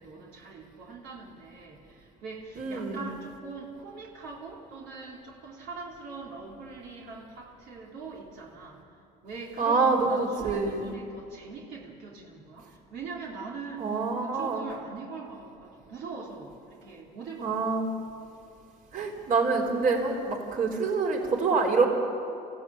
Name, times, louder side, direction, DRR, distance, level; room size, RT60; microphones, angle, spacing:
voice 1, 0.0-8.8 9.2-13.9 14.2-17.9, right 4 dB, 80° right, -3 dB, 3.5 m, -42 dB
voice 2, 2.6-3.1 9.6-10.9 13.8-14.7 17.4-17.9 18.9-21.9, right 4 dB, 55° right, 1 dB, 3.9 m, -26 dB
28.0 x 16.0 x 8.7 m, 2.6 s
cardioid pair, 110°, 17 cm